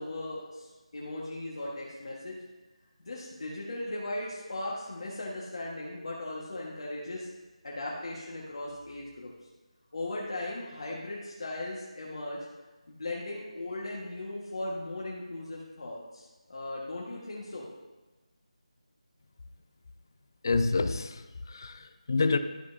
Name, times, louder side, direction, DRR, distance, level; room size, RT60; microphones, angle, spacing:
voice 1, 0.0-2.4 3.0-7.3 7.6-9.3 9.9-12.5 12.9-17.7, left 2 dB, 50° left, -4 dB, 1.4 m, -38 dB
voice 2, 20.4-22.4, left 3 dB, 35° left, 10 dB, 0.4 m, -28 dB
12.5 x 5.4 x 2.7 m, 1.2 s
figure-of-eight pair, 175°, 4 cm